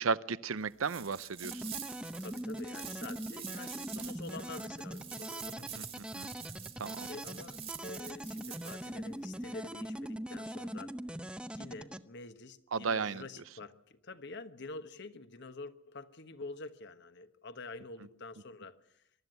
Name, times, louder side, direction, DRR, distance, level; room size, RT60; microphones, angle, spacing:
voice 1, 0.0-1.6 6.1-6.3 6.8-7.1 12.7-13.2, right 5 dB, 80° right, 0.7 m, -33 dB
sound 1, 0.8-8.9, right 8 dB, 30° right, 1.8 m, -46 dB
sound 2, 1.4-12.0, equal, 5° right, 0.7 m, -42 dB
voice 2, 2.2-5.9 7.1-10.9 11.5-19.0, left 3 dB, 55° left, 1.2 m, -47 dB
23.0 x 13.0 x 9.3 m
head